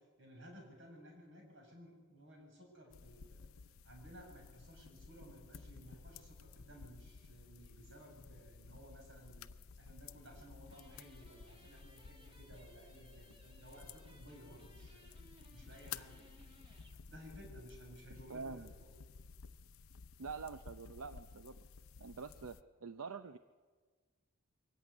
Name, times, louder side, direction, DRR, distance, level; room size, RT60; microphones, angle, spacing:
voice 1, 0.2-3.5 3.8-9.5 9.8-15.0 15.5-16.5 17.1-18.9, equal, 55° right, 1 dB, 6.9 m, -57 dB
sound 1, 2.9-22.6, left 5 dB, 70° left, 0.6 m, -54 dB
sound 2, 10.6-17.0, right 1 dB, 25° right, 2.4 m, -65 dB
voice 2, 18.1-18.7 20.2-21.6 22.0-23.4, right 5 dB, 80° right, 10 dB, 0.7 m, -46 dB
23.0 x 14.5 x 9.6 m, 1.4 s
head